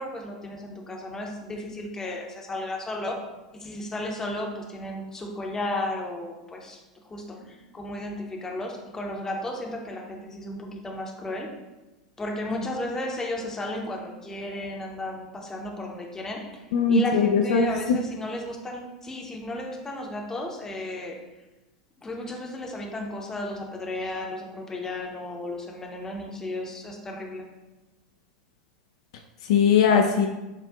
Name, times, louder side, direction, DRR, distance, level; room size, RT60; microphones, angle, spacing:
voice 1, 0.0-3.2 3.5-6.8 7.0-11.5 12.2-21.2 22.0-27.5, left 1 dB, 15° left, 1 dB, 0.7 m, -34 dB
voice 2, 16.7-18.0 29.4-30.3, left 5 dB, 60° left, 3 dB, 0.3 m, -20 dB
7.4 x 2.5 x 2.4 m, 1.1 s
figure-of-eight pair, 85°, 4 cm